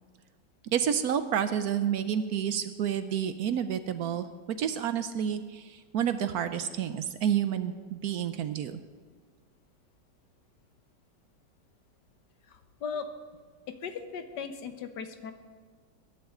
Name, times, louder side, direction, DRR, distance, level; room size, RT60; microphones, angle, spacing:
voice 1, 0.7-8.8, right 9 dB, 70° right, 11 dB, 1.0 m, -29 dB
voice 2, 12.5-13.1 13.7-15.3, left 6 dB, 75° left, 8 dB, 1.6 m, -38 dB
21.5 x 10.5 x 3.8 m, 1.5 s
omnidirectional pair, 1.9 m